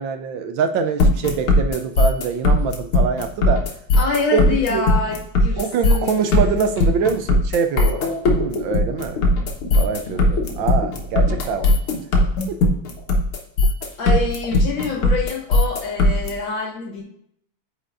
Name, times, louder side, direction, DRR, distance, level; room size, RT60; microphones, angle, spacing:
voice 1, 0.0-3.6 4.3-4.9 5.6-8.0 8.3-9.2 9.8-11.7, right 5 dB, 70° right, 7 dB, 1.3 m, -24 dB
sound 1, 1.0-16.3, left 2 dB, 80° left, 2.1 m, -18 dB
voice 2, 4.0-6.6 14.0-17.0, left 3 dB, 60° left, -2 dB, 2.1 m, -26 dB
8.6 x 5.2 x 2.5 m, 0.71 s
omnidirectional pair, 2.4 m